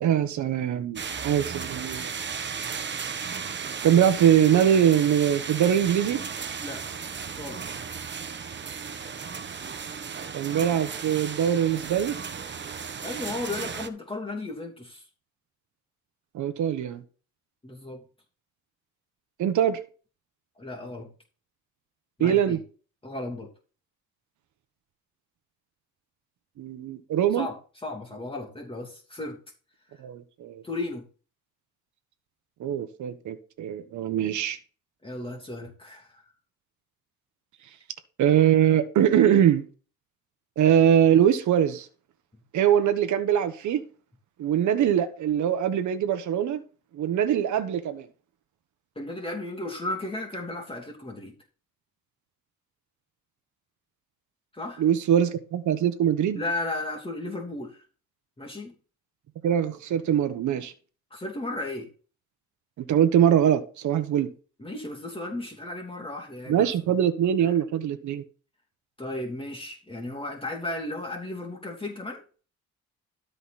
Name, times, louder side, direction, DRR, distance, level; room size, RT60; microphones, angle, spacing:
voice 1, 0.0-2.1 3.8-6.2 10.3-12.2 16.3-17.0 19.4-19.8 22.2-22.6 26.6-27.5 30.0-30.6 32.6-34.6 38.2-39.6 40.6-41.9 42.5-43.8 44.4-46.6 46.9-48.1 54.8-56.4 59.4-60.7 62.9-64.3 66.5-68.2, right 9 dB, 75° right, 1.3 m, -22 dB
sound 1, 1.0-13.9, right 6 dB, 40° right, 1.1 m, -35 dB
voice 2, 7.4-7.8 13.0-15.0 17.6-18.0 20.6-21.1 22.2-22.6 23.0-23.5 27.3-29.4 29.9-30.0 30.6-31.0 35.0-36.3 48.9-51.3 54.5-54.8 56.3-57.8 58.4-58.7 61.1-61.9 64.6-66.7 67.4-67.5 69.0-72.2, left 2 dB, 20° left, 2.8 m, -35 dB
12.5 x 5.3 x 4.2 m
cardioid pair, 90°, 30 cm